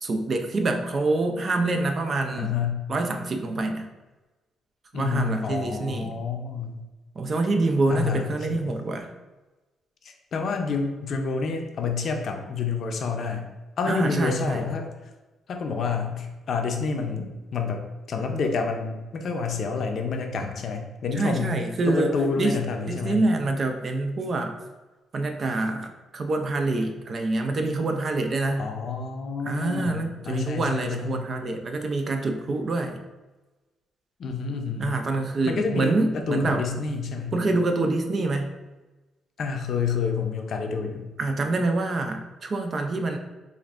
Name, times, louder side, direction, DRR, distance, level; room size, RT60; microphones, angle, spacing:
voice 1, 0.0-2.5 2.9-3.9 4.9-6.2 7.2-9.1 13.9-14.6 21.1-22.6 22.9-24.5 25.1-28.7 29.4-33.0 34.8-36.6 37.3-38.5 41.2-43.2, right 2 dB, 45° right, 5 dB, 0.5 m, -26 dB
voice 2, 2.4-2.8 4.9-6.8 7.9-8.6 10.0-13.4 13.8-14.9 15.5-17.8 18.1-21.6 21.9-23.2 28.6-31.2 34.2-34.9 35.5-36.0 36.3-37.3 39.4-41.1, left 5 dB, 60° left, 4 dB, 0.5 m, -28 dB
5.0 x 2.6 x 2.5 m, 1.1 s
cardioid pair, 90°, 0 cm